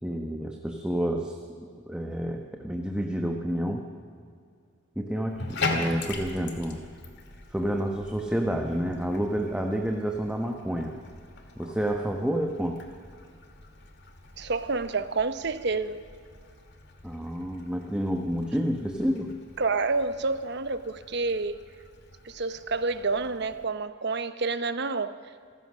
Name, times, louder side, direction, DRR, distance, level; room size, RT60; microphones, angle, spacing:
voice 1, 0.0-1.4 1.9-3.9 5.0-6.8 7.5-11.0 11.6-12.8 17.0-19.3, equal, 5° right, 2 dB, 1.2 m, -29 dB
Bathtub (filling or washing), 5.3-23.6, left 3 dB, 60° left, 2.4 m, -41 dB
voice 2, 14.4-16.0 19.6-21.7 22.2-25.1, right 3 dB, 60° right, 11 dB, 1.0 m, -29 dB
27.0 x 15.5 x 6.3 m, 2.3 s
head